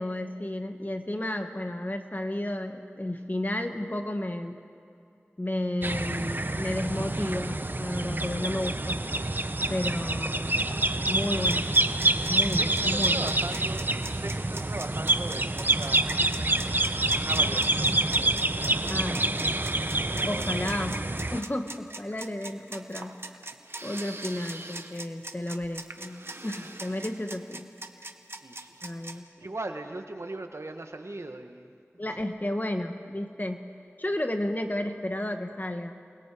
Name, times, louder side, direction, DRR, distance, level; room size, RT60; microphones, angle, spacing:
voice 1, 0.0-4.6 5.4-9.0 9.7-10.5 11.1-11.9 12.3-13.4 18.9-19.2 20.2-21.0 21.3-23.2 23.8-27.7 28.8-29.2 32.0-33.7 34.0-35.9, left 1 dB, 40° left, 5 dB, 1.4 m, -32 dB
sound 1, 5.8-21.4, right 2 dB, 45° right, 0.7 m, -27 dB
sound 2, 11.4-29.2, right 2 dB, 60° right, 1.0 m, -41 dB
voice 2, 12.3-16.3 17.1-18.0 18.4-19.4 20.1-20.7 26.6-26.7 28.4-28.9 29.4-31.8, right 2 dB, 85° right, 6 dB, 1.1 m, -40 dB
28.0 x 20.5 x 4.9 m, 2.5 s
wide cardioid pair, 45°, 5 cm